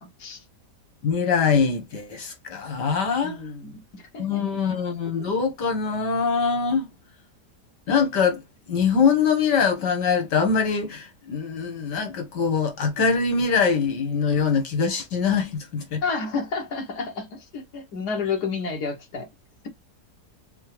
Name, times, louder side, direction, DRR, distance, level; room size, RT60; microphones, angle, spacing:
voice 1, 1.0-3.4 4.2-6.9 7.9-8.4 8.7-16.0, left 5 dB, 85° left, 2.1 m, -23 dB
voice 2, 3.2-4.6 16.0-19.3, left 4 dB, 70° left, 1.9 m, -30 dB
6.5 x 2.3 x 3.2 m
omnidirectional pair, 1.8 m